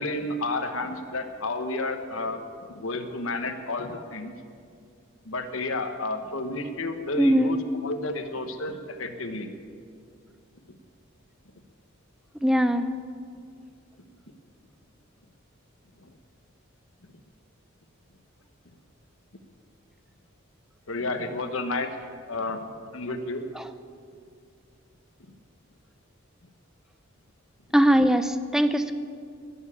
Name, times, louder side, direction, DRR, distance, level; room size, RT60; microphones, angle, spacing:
voice 1, 0.0-4.3 5.2-9.5 16.0-16.1 20.9-21.9 22.3-22.7 22.9-23.4 25.3-25.4, left 2 dB, 75° left, 7 dB, 1.2 m, -31 dB
voice 2, 7.2-7.6 12.4-12.9 27.7-28.9, equal, 5° right, 10 dB, 0.5 m, -21 dB
20.0 x 7.2 x 8.5 m, 2.3 s
head